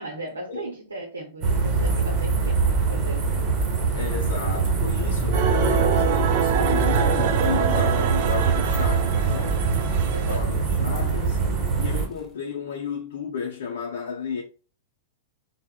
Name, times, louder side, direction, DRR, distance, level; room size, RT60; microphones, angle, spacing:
voice 1, 0.0-3.5 10.1-10.5, right 2 dB, 85° right, 0.6 m, -36 dB
sound 1, 1.4-12.1, right 4 dB, 35° right, 1.2 m, -23 dB
voice 2, 4.0-9.6 10.3-11.4 11.7-14.4, left 6 dB, 70° left, 0.5 m, -33 dB
sound 2, 4.2-12.3, right 3 dB, 10° right, 0.7 m, -42 dB
sound 3, 5.3-10.4, right 8 dB, 55° right, 0.3 m, -26 dB
3.5 x 2.1 x 2.2 m
hypercardioid pair, 105°, 0 cm